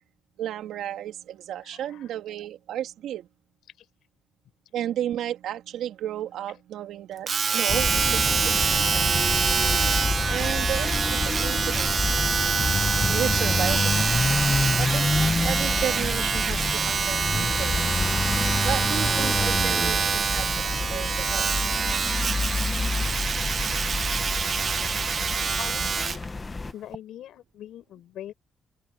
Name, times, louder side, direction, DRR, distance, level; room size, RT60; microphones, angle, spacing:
voice 1, 0.4-3.3 4.7-9.0 10.3-11.9 13.1-14.0 14.8-17.8 18.6-21.6, right 11 dB, 90° right, 3.1 m, -33 dB
voice 2, 1.6-2.1 3.8-3.9 25.3-26.2 26.7-28.3, left 12 dB, 85° left, 7.6 m, -42 dB
Domestic sounds home sounds, 7.3-26.2 26.9-27.0, right 6 dB, 40° right, 1.2 m, -26 dB
sound 1, 7.7-26.7, left 3 dB, 20° left, 0.9 m, -28 dB
cardioid pair, 125°, 0 cm